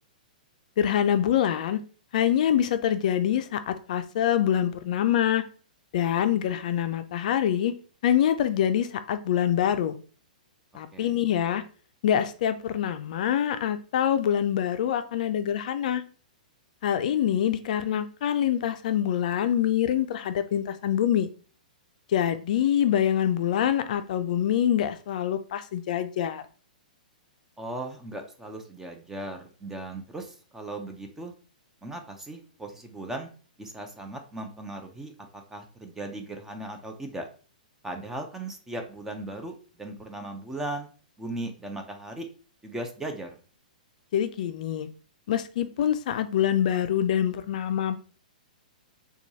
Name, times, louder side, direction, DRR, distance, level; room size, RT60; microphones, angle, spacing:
voice 1, 0.8-1.8 2.1-5.4 5.9-7.7 8.0-10.0 10.7-11.6 12.0-16.0 16.8-21.3 22.1-26.4 44.1-44.9 45.3-48.0, left 10 dB, 60° left, 10 dB, 0.4 m, -25 dB
voice 2, 27.6-31.3 31.8-33.3 33.6-37.3 37.8-40.9 41.2-42.3 42.6-43.3, right 2 dB, 10° right, 4 dB, 0.5 m, -37 dB
4.4 x 2.3 x 2.7 m, 0.39 s
hypercardioid pair, 140°, 5 cm